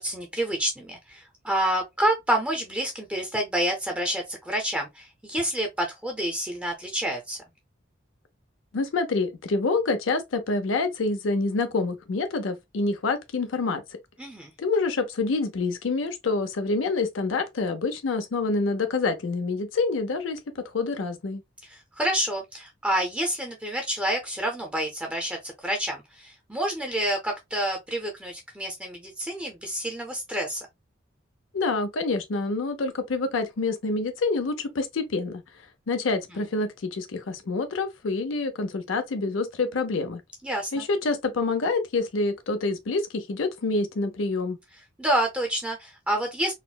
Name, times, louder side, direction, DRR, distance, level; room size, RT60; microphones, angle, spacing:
voice 1, 0.0-7.4 14.2-14.5 21.6-30.7 40.4-40.8 45.0-46.5, right 1 dB, 5° right, 0.5 m, -28 dB
voice 2, 8.7-13.8 14.6-21.4 31.5-35.4 35.9-40.2 40.7-44.6, left 3 dB, 90° left, 0.5 m, -27 dB
4.1 x 2.0 x 2.2 m
head